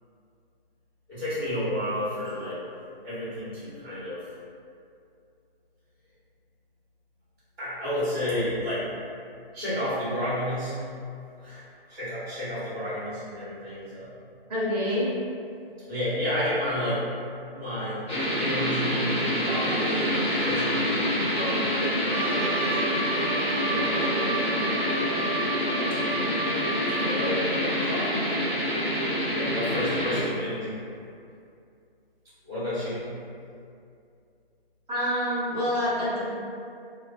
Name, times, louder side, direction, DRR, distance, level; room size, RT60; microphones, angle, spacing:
voice 1, 1.1-2.6 3.0-4.3 7.6-9.0 9.5-10.8 11.4-11.6 11.9-14.1 15.8-17.0 17.5-18.0 18.4-22.8 23.6-24.4 26.9-28.2 29.3-30.8 32.4-33.1, left 1 dB, 5° right, -25 dB, 0.5 m, -31 dB
voice 2, 14.5-15.1 34.9-36.3, left 1 dB, 40° right, -8 dB, 0.9 m, -26 dB
sound 1, 18.1-30.2, equal, 30° left, 0.9 m, -26 dB
Trumpet, 22.1-27.4, right 3 dB, 90° right, 0.5 m, -33 dB
2.7 x 2.2 x 2.6 m, 2.4 s
hypercardioid pair, 160°, 30 cm